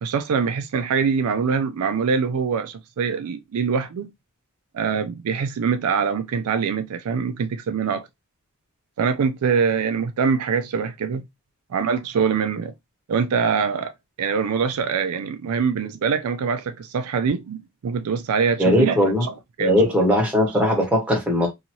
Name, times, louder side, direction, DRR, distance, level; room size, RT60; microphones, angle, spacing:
voice 1, 0.0-4.1 4.7-8.1 9.0-11.2 11.7-12.7 13.1-13.9 14.2-19.7, right 6 dB, 75° right, 0.4 m, -24 dB
voice 2, 18.6-19.3 19.6-21.5, equal, 5° right, 1.0 m, -19 dB
2.7 x 2.7 x 2.9 m
head